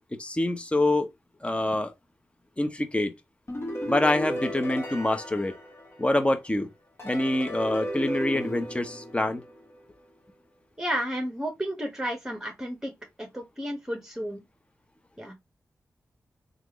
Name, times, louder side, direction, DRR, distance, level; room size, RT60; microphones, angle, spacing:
voice 1, 0.2-1.1 1.4-1.9 2.6-3.1 3.9-5.5 6.0-6.7 7.0-9.4, left 1 dB, 20° left, 0.9 m, -26 dB
sound 1, 3.5-6.3 7.0-9.8, equal, 45° left, 1.4 m, -35 dB
voice 2, 10.8-12.9 13.2-14.4 15.2-15.3, equal, 5° right, 1.3 m, -32 dB
3.4 x 2.5 x 3.0 m
cardioid pair, 40°, 6 cm